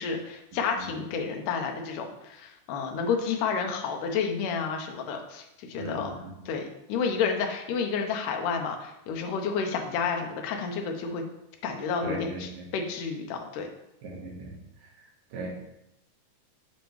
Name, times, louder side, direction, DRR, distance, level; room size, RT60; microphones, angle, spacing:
voice 1, 0.0-6.1 6.5-11.2 11.6-13.7, left 5 dB, 85° left, 3 dB, 2.3 m, -30 dB
voice 2, 5.7-6.3 12.0-12.6 14.0-14.5 14.8-14.9 15.3-15.5, right 2 dB, 80° right, -3 dB, 2.8 m, -38 dB
7.3 x 5.0 x 3.1 m, 0.86 s
omnidirectional pair, 3.7 m